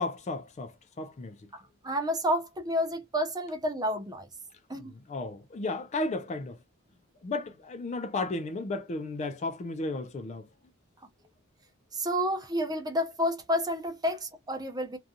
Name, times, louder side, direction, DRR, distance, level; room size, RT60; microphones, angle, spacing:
voice 1, 0.0-1.4 4.9-6.6 7.2-10.5, left 2 dB, 30° left, 0.3 m, -34 dB
voice 2, 1.5-4.3 4.7-4.9 11.9-15.0, equal, 20° right, 0.6 m, -30 dB
2.4 x 2.3 x 2.7 m
head